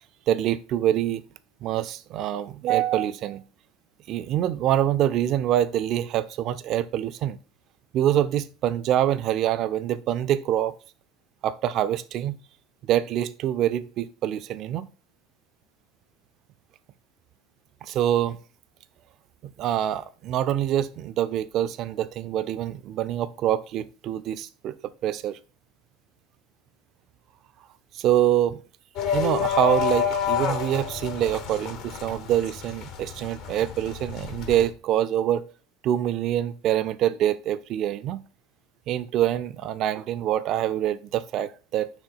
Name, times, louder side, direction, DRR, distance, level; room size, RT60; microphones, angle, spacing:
voice 1, 0.3-1.2 1.6-3.4 4.1-7.4 7.9-10.7 11.4-12.4 12.9-14.9 17.8-18.4 19.4-24.7 25.0-25.4 27.9-28.6 29.1-35.4 35.8-38.2 38.9-41.9, right 11 dB, 50° right, 0.4 m, -25 dB
sound 1, 29.0-34.7, left 7 dB, 60° left, 1.1 m, -29 dB
6.1 x 3.3 x 5.5 m
hypercardioid pair, 80°, 0 cm